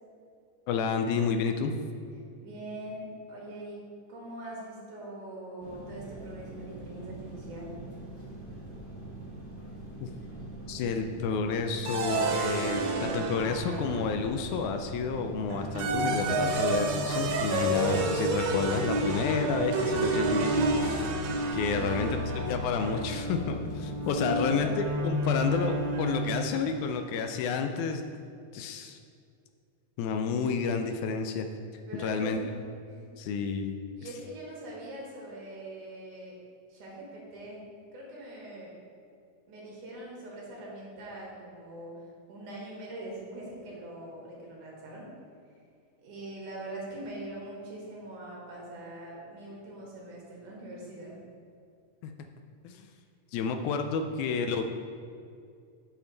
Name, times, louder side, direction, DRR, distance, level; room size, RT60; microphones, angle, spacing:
voice 1, 0.7-1.7 10.0-10.1 10.7-21.2 21.5-22.2 22.5-24.7 25.0-28.0 28.5-29.0 30.0-31.5 32.0-32.4 33.2-33.8 52.0-52.1 52.6-52.9 53.3-54.7, left 5 dB, 85° left, 6 dB, 1.7 m, -30 dB
voice 2, 2.4-3.8 4.1-7.8 21.7-22.2 24.2-24.8 31.9-32.6 32.9-33.0 34.0-36.3 36.7-37.6 37.9-38.7 39.5-41.9 42.3-45.0 46.0-51.2, right 1 dB, 70° right, -4 dB, 3.0 m, -42 dB
sound 1, 5.6-24.7, right 2 dB, 10° left, 0.7 m, -43 dB
sound 2, 11.8-14.4 15.5-26.6, right 2 dB, 85° right, 2.5 m, -30 dB
7.1 x 7.0 x 3.9 m, 2.4 s
omnidirectional pair, 3.9 m